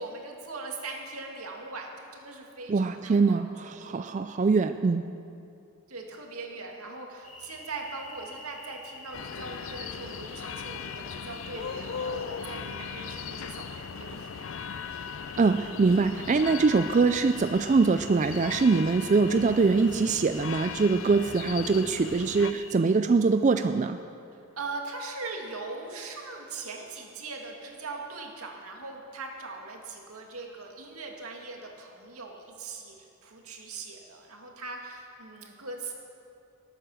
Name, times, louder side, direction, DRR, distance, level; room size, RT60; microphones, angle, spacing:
voice 1, 0.0-3.4 3.6-4.0 5.9-14.3 24.3-35.9, right 3 dB, 85° right, 1 dB, 2.2 m, -40 dB
voice 2, 2.7-5.1 15.4-24.0, right 4 dB, 35° right, 9 dB, 0.3 m, -23 dB
sound 1, 7.2-22.7, left 2 dB, 35° left, 2.6 m, -47 dB
sound 2, 9.1-22.5, left 7 dB, 60° left, 0.4 m, -39 dB
21.0 x 8.9 x 6.3 m, 2.6 s
head